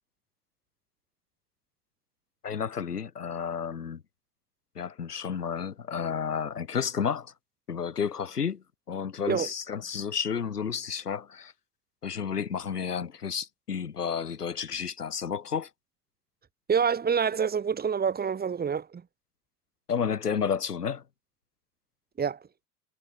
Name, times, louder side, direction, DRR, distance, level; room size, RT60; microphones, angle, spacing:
voice 1, 2.4-4.0 4.8-7.3 7.7-11.5 12.0-15.7 19.9-21.0, left 7 dB, 85° left, 2.5 m, -31 dB
voice 2, 16.7-19.0 22.2-22.4, right 6 dB, 20° right, 2.0 m, -27 dB
figure-of-eight pair, 75°, 45 cm